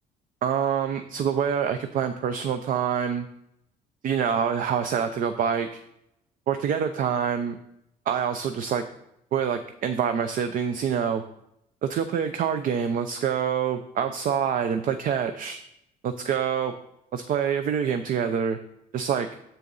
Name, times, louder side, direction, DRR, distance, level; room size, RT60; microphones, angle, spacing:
voice 1, 0.4-3.3 4.0-5.8 6.5-7.6 8.1-8.8 9.3-11.2 11.8-15.6 16.0-16.7 17.1-18.6 18.9-19.3, right 7 dB, 55° right, 9 dB, 0.6 m, -26 dB
7.6 x 6.6 x 4.0 m, 0.81 s
cardioid pair, 110°, 17 cm